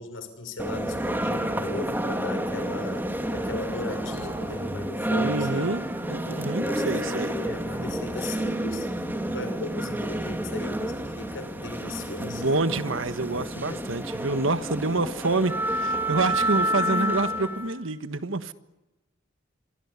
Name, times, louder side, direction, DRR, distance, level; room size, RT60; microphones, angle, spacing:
voice 1, 0.0-5.8 6.3-8.9 9.3-12.4 13.4-13.8, left 2 dB, 80° left, 8 dB, 6.2 m, -38 dB
sound 1, 0.6-17.7, right 1 dB, 10° right, 2.8 m, -29 dB
voice 2, 5.1-5.8 6.1-7.3 12.2-18.5, right 3 dB, 75° right, 12 dB, 1.5 m, -27 dB
25.0 x 25.0 x 8.4 m, 1.1 s
head